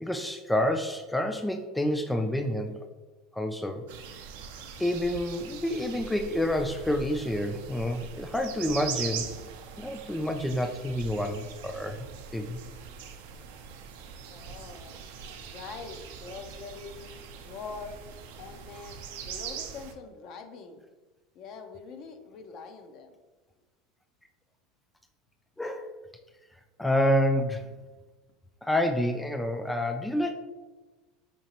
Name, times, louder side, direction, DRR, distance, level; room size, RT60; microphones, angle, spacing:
voice 1, 0.0-2.9 3.3-3.9 4.8-9.3 9.8-12.1 12.3-12.6 25.6-25.9 26.8-27.6 28.6-30.3, left 1 dB, 5° left, 6 dB, 0.3 m, -28 dB
sound 1, 3.9-19.9, right 7 dB, 75° right, 0.5 m, -42 dB
voice 2, 14.3-15.0 15.5-17.1 17.4-18.0 18.4-20.8 21.3-23.1, left 5 dB, 55° left, 6 dB, 0.5 m, -43 dB
5.1 x 2.8 x 2.9 m, 1.2 s
hypercardioid pair, 95°, 0 cm